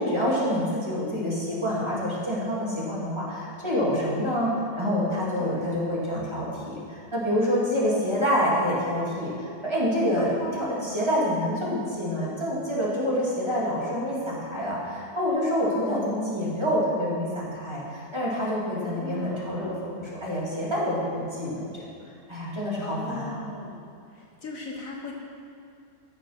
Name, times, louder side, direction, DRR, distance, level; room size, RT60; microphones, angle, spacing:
voice 1, 0.0-21.8 22.3-23.4, equal, 15° right, -7 dB, 2.6 m, -27 dB
voice 2, 5.4-5.7 10.2-10.9 15.8-16.6 18.8-19.5 22.8-23.8 24.4-25.1, left 2 dB, 60° left, -1 dB, 1.5 m, -37 dB
14.0 x 6.5 x 5.9 m, 2.5 s
omnidirectional pair, 1.7 m